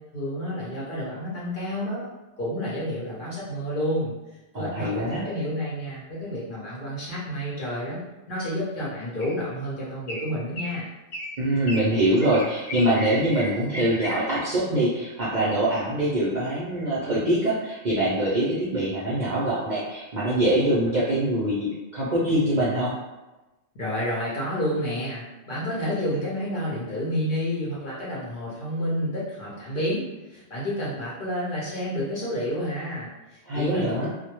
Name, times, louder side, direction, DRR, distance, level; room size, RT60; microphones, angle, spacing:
voice 1, 0.0-2.1 2.4-4.2 4.6-10.9 23.7-30.0 30.3-34.1, equal, 55° left, -7 dB, 0.7 m, -30 dB
voice 2, 4.5-5.2 11.4-22.9 33.4-34.1, right 1 dB, 55° right, -9 dB, 0.5 m, -24 dB
sound 1, 9.2-9.5 10.1-10.3 10.6-10.8 11.1-11.3 11.7-11.9 12.2-14.4, equal, 80° left, 1.0 m, -35 dB
2.1 x 2.1 x 2.9 m, 1.1 s
omnidirectional pair, 1.3 m